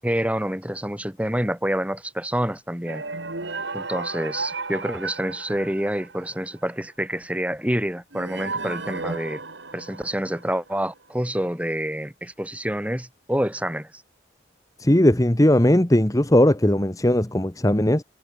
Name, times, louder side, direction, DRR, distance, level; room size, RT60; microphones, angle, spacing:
voice 1, 0.0-3.0 3.7-9.4 9.7-13.9, equal, 5° right, 2.5 m, -27 dB
sound 1, 2.9-6.5 8.1-10.7, right 3 dB, 65° right, 2.8 m, -34 dB
voice 2, 14.8-18.0, left 1 dB, 15° left, 1.1 m, -18 dB
head